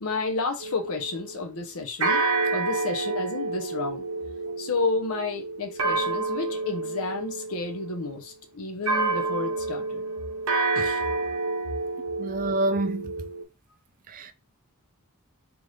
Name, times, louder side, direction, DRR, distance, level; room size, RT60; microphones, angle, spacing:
voice 1, 0.0-2.3 2.5-4.0 4.6-10.0 10.7-11.0, left 3 dB, 75° left, 0.8 m, -31 dB
sound 1, 0.6-1.5 2.0-8.2 8.9-13.4, right 3 dB, 75° right, 1.0 m, -29 dB
voice 2, 12.2-13.1 14.1-14.3, right 2 dB, 35° right, 0.4 m, -27 dB
3.5 x 2.6 x 3.2 m
head